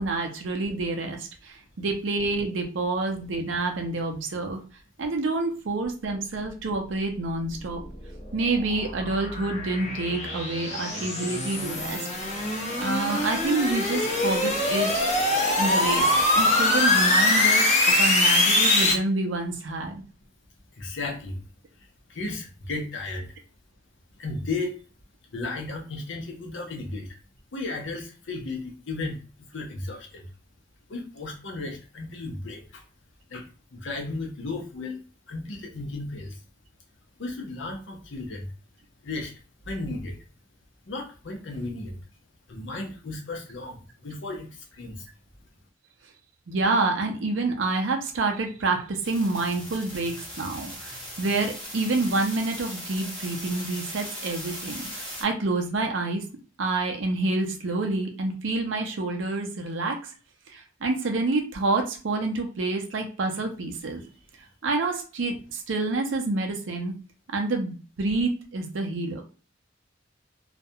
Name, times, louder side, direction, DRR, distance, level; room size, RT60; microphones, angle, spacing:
voice 1, 0.0-4.6 5.0-7.8 8.3-12.1 12.8-14.9 15.6-16.1 16.3-20.0 46.5-56.2 56.6-60.0 60.5-64.0 64.6-66.9 67.3-69.2, right 3 dB, 80° right, 3 dB, 0.5 m, -28 dB
sound 1, 7.6-18.9, left 2 dB, 35° left, 0.7 m, -23 dB
voice 2, 20.7-21.4 21.8-23.4 24.2-24.8 25.3-27.2 27.5-30.3 30.9-32.8 33.3-36.4 37.2-38.5 39.0-39.3 39.6-40.2 40.9-42.0 42.5-45.1, left 2 dB, 75° left, 2 dB, 0.6 m, -35 dB
sound 2, 49.0-55.2, equal, 5° left, 1.1 m, -39 dB
2.3 x 2.1 x 2.7 m, 0.36 s
head